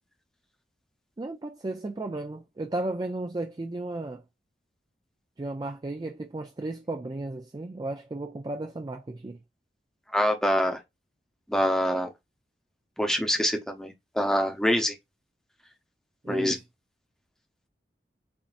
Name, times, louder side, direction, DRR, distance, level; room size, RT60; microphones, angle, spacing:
voice 1, 1.2-4.2 5.4-9.4 16.2-16.6, right 2 dB, 25° right, 0.3 m, -34 dB
voice 2, 10.1-10.8 11.5-12.1 13.0-15.0 16.3-16.6, equal, 5° left, 0.7 m, -25 dB
6.9 x 2.6 x 2.4 m
head